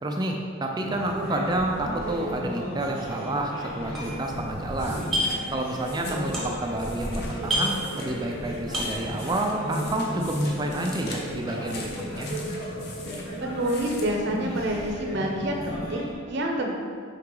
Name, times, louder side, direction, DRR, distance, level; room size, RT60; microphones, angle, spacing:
voice 1, 0.0-5.1 5.5-11.9 12.2-12.3, right 1 dB, 20° right, 2 dB, 0.3 m, -29 dB
sound 1, 0.8-16.1, equal, 75° left, 1.5 m, -34 dB
sound 2, 3.3-3.4 3.7-4.6 4.9-5.5 5.8-6.8 7.1-7.2 7.4-8.4 8.6-9.1, equal, ahead, 1.1 m, -29 dB
sound 3, 3.9-14.9, left 3 dB, 50° left, 0.8 m, -44 dB
voice 2, 13.4-16.7, right 1 dB, 55° right, 1 dB, 0.6 m, -28 dB
5.7 x 4.6 x 3.8 m, 2.1 s
head